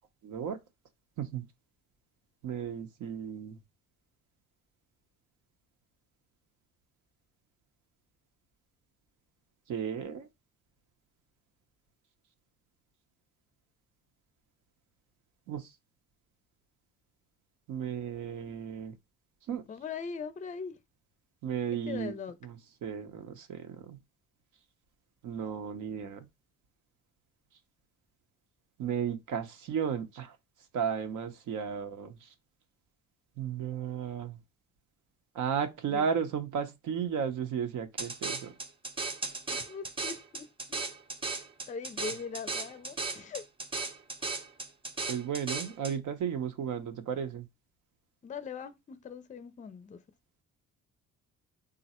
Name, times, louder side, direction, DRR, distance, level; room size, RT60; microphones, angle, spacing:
voice 1, 0.2-0.6 1.2-1.4 2.4-3.6 9.7-10.3 15.5-15.7 17.7-18.9 19.5-19.6 21.4-22.1 22.4-24.0 25.2-26.3 28.8-30.4 30.7-32.3 33.4-34.4 35.3-38.5 45.1-47.5, right 7 dB, 80° right, 0.8 m, -34 dB
voice 2, 19.7-20.8 21.9-22.3 35.9-36.0 39.5-40.8 41.7-43.4 48.2-50.0, left 6 dB, 25° left, 0.4 m, -41 dB
sound 1, 38.0-45.9, right 3 dB, 15° right, 0.7 m, -36 dB
3.8 x 2.1 x 4.2 m
cardioid pair, 90°, 30 cm